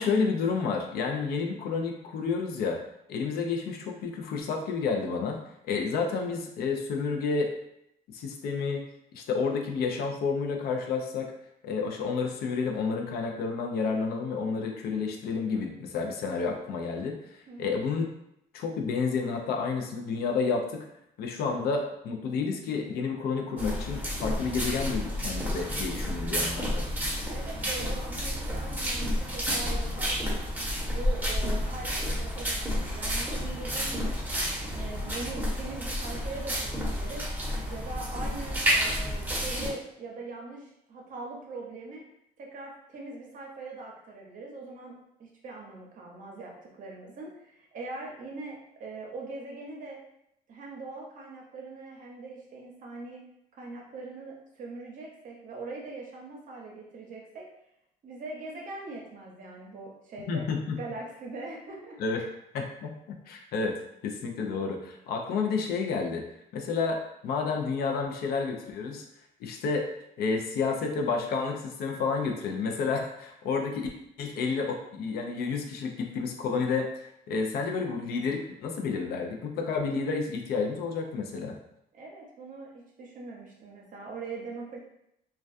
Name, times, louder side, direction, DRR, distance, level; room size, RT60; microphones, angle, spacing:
voice 1, 0.0-2.8 3.1-5.4 5.6-7.5 8.1-8.8 9.1-11.3 11.6-18.1 18.5-20.9 21.2-26.8 60.3-60.6 62.0-62.2 62.5-63.8 64.0-66.2 66.5-69.0 69.4-69.9 70.2-73.9 74.2-81.6, left 5 dB, 65° left, 3 dB, 0.5 m, -30 dB
voice 2, 17.5-17.8 27.3-30.4 30.9-34.2 34.7-37.3 37.7-42.0 42.4-50.0 50.5-53.2 53.5-57.4 58.0-60.5 60.8-62.3 81.9-84.8, right 3 dB, 50° right, -1 dB, 0.7 m, -42 dB
sound 1, 23.6-39.7, equal, 10° right, 0.8 m, -30 dB
2.3 x 2.2 x 2.5 m, 0.77 s
cardioid pair, 110°, 17 cm